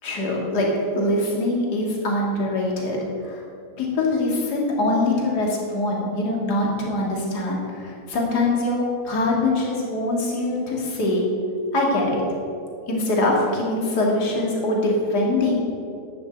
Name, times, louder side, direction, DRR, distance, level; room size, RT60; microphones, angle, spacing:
voice 1, 0.0-0.7 0.9-3.0 3.2-3.4 3.8-11.2 11.7-12.2 12.9-15.5, left 2 dB, 30° left, -2 dB, 2.6 m, -23 dB
11.5 x 9.4 x 8.1 m, 2.5 s
omnidirectional pair, 4.6 m